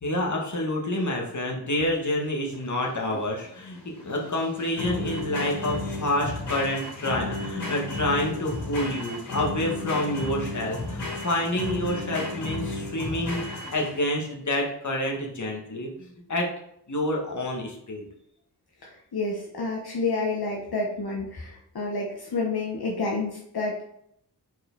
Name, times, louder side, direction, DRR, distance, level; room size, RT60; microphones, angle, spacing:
voice 1, 0.0-16.5 16.9-18.1, left 1 dB, 45° left, -1 dB, 1.6 m, -28 dB
sound 1, 2.5-14.2, left 2 dB, 85° left, 2.5 m, -33 dB
voice 2, 18.8-23.8, left 3 dB, 65° left, -2 dB, 1.1 m, -29 dB
4.7 x 4.7 x 4.5 m, 0.73 s
wide cardioid pair, 75°, 40 cm